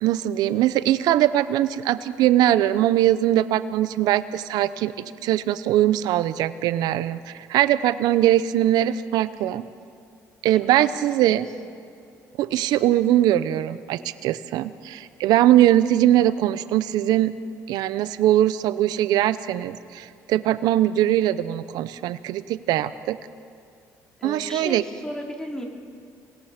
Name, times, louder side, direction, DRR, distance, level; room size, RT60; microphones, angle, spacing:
voice 1, 0.0-4.9 5.2-9.6 10.4-11.5 12.4-17.3 17.7-23.2 24.2-24.8, right 13 dB, 80° right, 14 dB, 0.7 m, -21 dB
voice 2, 24.2-25.7, equal, 10° left, 0 dB, 3.7 m, -34 dB
27.5 x 18.0 x 5.9 m, 2.4 s
cardioid pair, 85°, 7 cm